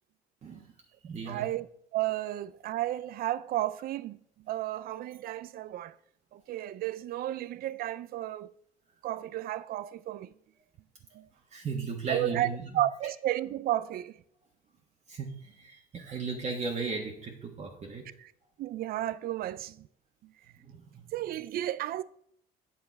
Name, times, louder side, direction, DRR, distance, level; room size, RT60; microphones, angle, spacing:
voice 1, 0.4-0.7 1.0-1.5 11.5-12.8 15.1-18.1 20.6-21.1, right 4 dB, 40° right, 1.4 m, -36 dB
voice 2, 1.3-1.7 1.9-4.2 4.5-5.9 6.3-8.5 9.0-10.3 11.2-11.3 12.1-12.5 12.7-14.1 18.6-19.8 21.1-22.0, right 14 dB, 60° right, 0.5 m, -32 dB
8.8 x 6.8 x 4.6 m
cardioid pair, 110°, 17 cm